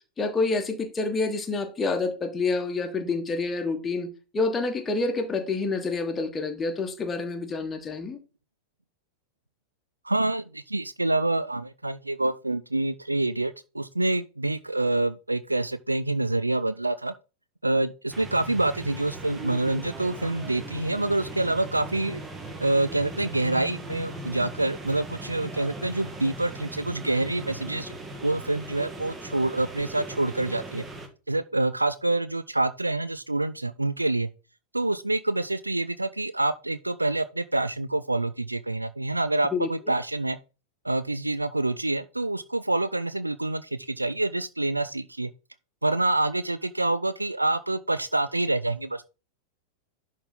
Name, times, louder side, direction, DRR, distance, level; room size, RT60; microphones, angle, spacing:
voice 1, 0.2-8.2 39.5-39.7, left 3 dB, 15° left, 1.3 m, -28 dB
voice 2, 10.0-17.1 17.6-22.2 22.6-27.9 28.2-30.9 31.3-34.3 34.7-40.4 40.8-45.3 45.8-49.0, right 2 dB, 85° right, 0.3 m, -27 dB
sound 1, 18.1-31.1, right 2 dB, 20° right, 1.4 m, -39 dB
11.0 x 3.7 x 3.9 m
figure-of-eight pair, 90°, 0 cm